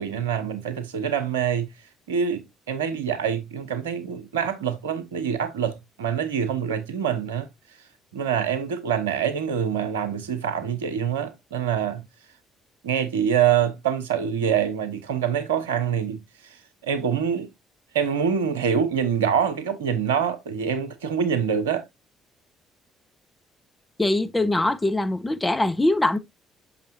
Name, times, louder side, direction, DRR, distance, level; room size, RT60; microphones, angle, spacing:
voice 1, 0.0-1.7 2.1-7.5 8.1-12.0 12.8-16.2 16.8-17.5 17.9-21.8, right 8 dB, 80° right, 0.8 m, -25 dB
voice 2, 24.0-26.2, left 2 dB, 15° left, 1.1 m, -22 dB
6.4 x 5.9 x 2.6 m
figure-of-eight pair, 50°, 0 cm